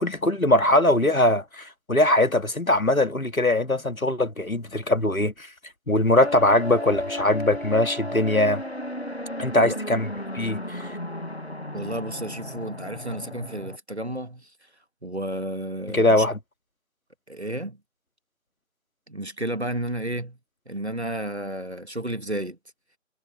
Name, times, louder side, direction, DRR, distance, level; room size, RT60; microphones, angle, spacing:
voice 1, 0.0-5.5 5.9-8.6 9.4-10.1 10.3-11.0 15.9-16.4, left 1 dB, 90° left, 2.2 m, -21 dB
Air Raid Siren Alarm, 6.2-13.8, left 1 dB, 50° left, 1.7 m, -34 dB
voice 2, 11.7-14.5 15.0-16.3 17.3-17.8 19.1-20.4 20.7-22.6, right 1 dB, 55° right, 1.6 m, -32 dB
figure-of-eight pair, 180°, 41 cm